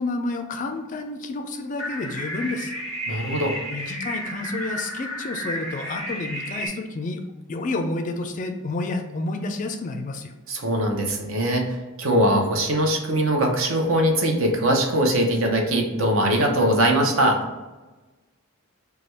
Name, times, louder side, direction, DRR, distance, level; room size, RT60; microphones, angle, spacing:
voice 1, 0.0-2.7 3.7-7.2 7.5-10.3, left 2 dB, 35° left, 5 dB, 0.3 m, -30 dB
sound 1, 1.8-6.7, equal, 30° right, 1.2 m, -32 dB
voice 2, 3.1-3.5 10.5-17.4, right 1 dB, 60° right, 2 dB, 0.7 m, -21 dB
3.2 x 2.3 x 4.3 m, 1.2 s
head